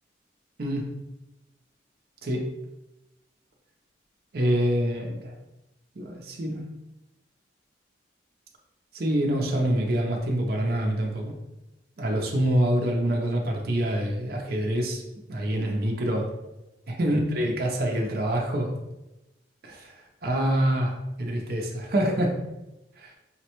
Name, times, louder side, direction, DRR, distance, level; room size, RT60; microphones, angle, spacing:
voice 1, 4.3-5.3 6.0-6.6 8.9-11.3 12.0-15.0 15.3-16.3 16.9-18.7 19.6-19.9 20.2-22.3 23.0-23.1, right 1 dB, 50° right, 0 dB, 0.5 m, -26 dB
5.6 x 2.1 x 2.9 m, 0.97 s
head